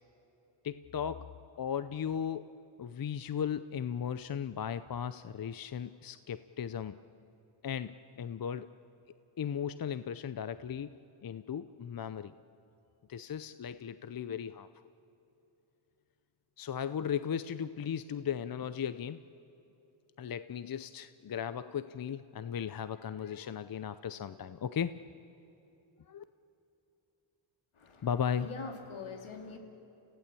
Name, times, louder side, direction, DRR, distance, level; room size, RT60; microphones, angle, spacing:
voice 1, 0.6-1.3 1.6-2.5 2.8-7.0 7.6-8.7 9.4-11.0 11.2-12.3 13.1-14.7 16.6-19.2 20.2-25.0 26.1-26.2 28.0-28.5, left 8 dB, 45° left, 13 dB, 0.7 m, -36 dB
voice 2, 27.8-28.1 28.4-29.6, left 4 dB, 75° left, 4 dB, 2.9 m, -43 dB
29.0 x 16.0 x 8.4 m, 2.9 s
cardioid pair, 80°, 49 cm